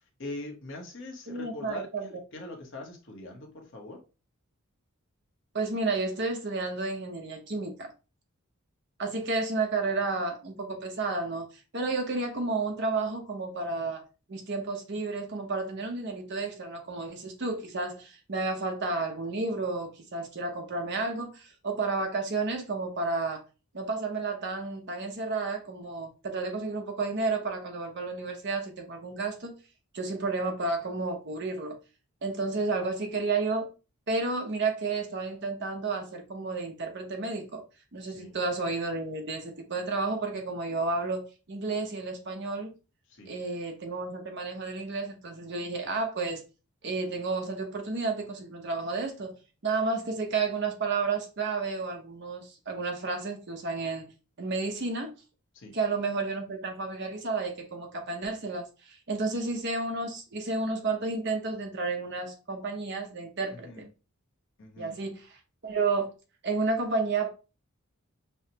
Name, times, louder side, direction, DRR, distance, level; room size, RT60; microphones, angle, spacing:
voice 1, 0.2-4.0 38.1-38.4 43.1-43.3 55.5-55.7 63.5-63.9 64.6-65.0, left 2 dB, 55° left, 1.0 m, -42 dB
voice 2, 1.3-2.0 5.5-7.9 9.0-14.0 14.3-23.4 23.7-29.5 29.9-31.8 32.2-33.7 34.1-37.6 37.9-42.7 43.3-46.4 46.8-49.4 49.6-54.1 54.4-55.1 55.7-63.8 64.8-65.4 65.6-66.1 66.4-67.3, right 3 dB, 50° right, 0.8 m, -31 dB
5.5 x 2.1 x 2.8 m
head